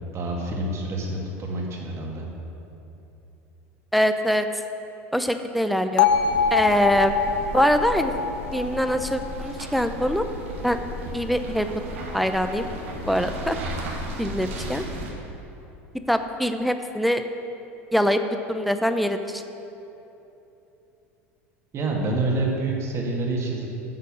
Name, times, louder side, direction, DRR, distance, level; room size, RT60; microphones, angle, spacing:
voice 1, 0.0-2.2 21.7-23.7, right 2 dB, 40° right, -1 dB, 2.2 m, -27 dB
voice 2, 3.9-4.5 5.1-6.1 6.5-7.1 7.5-8.1 8.5-10.2 10.6-10.8 11.1-11.7 12.1-12.7 13.1-13.6 14.2-14.8 16.1-17.2 17.9-18.2 18.5-19.4, equal, ahead, 8 dB, 0.6 m, -23 dB
Bell, 6.0-10.1, left 6 dB, 65° left, 0.6 m, -24 dB
sound 1, 6.1-15.1, equal, 75° right, 1.8 m, -35 dB
9.6 x 6.8 x 6.3 m, 3.0 s
hypercardioid pair, 85°, 7 cm